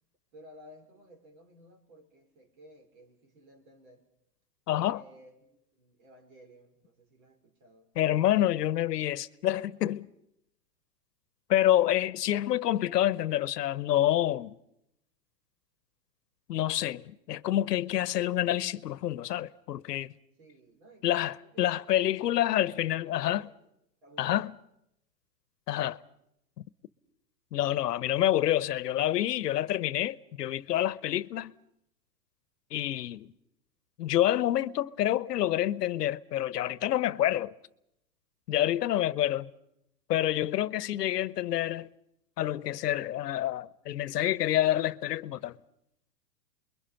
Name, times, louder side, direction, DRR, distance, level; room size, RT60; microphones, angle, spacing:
voice 1, 0.3-4.0 4.9-7.9 20.4-23.6 24.0-24.4, equal, 60° right, 5.2 m, -56 dB
voice 2, 4.7-5.0 8.0-10.1 11.5-14.6 16.5-20.1 21.0-23.5 24.2-24.5 25.7-26.0 27.5-31.5 32.7-33.3 34.0-37.5 38.5-39.5 40.1-41.9 42.4-45.6, left 13 dB, 75° left, 1.0 m, -28 dB
29.0 x 22.0 x 5.7 m
hypercardioid pair, 125°, 48 cm